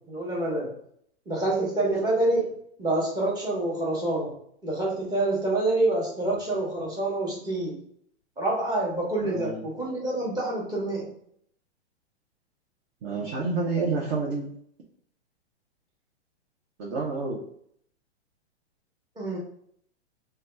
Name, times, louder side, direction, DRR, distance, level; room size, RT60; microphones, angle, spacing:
voice 1, 0.1-0.7 1.3-2.5 2.8-4.3 4.6-7.8 8.4-11.1 19.2-19.4, right 2 dB, 10° right, -4 dB, 0.8 m, -27 dB
voice 2, 9.2-9.6 13.0-14.5 16.8-17.4, right 4 dB, 25° right, -2 dB, 0.4 m, -29 dB
2.8 x 2.2 x 3.2 m, 0.67 s
hypercardioid pair, 130°, 34 cm